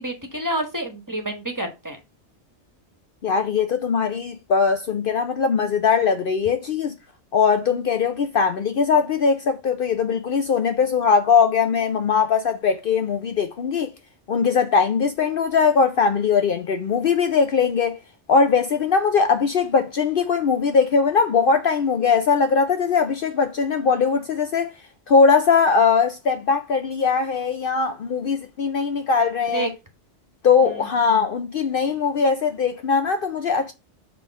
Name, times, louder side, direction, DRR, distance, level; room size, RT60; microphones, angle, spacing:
voice 1, 0.0-2.0 29.5-29.7 30.6-30.9, right 1 dB, 15° right, 1.3 m, -29 dB
voice 2, 3.2-6.9 7.3-13.9 14.3-18.0 18.3-24.7 25.1-29.7 30.4-33.7, left 5 dB, 60° left, 0.7 m, -20 dB
6.9 x 3.2 x 5.4 m
omnidirectional pair, 1.2 m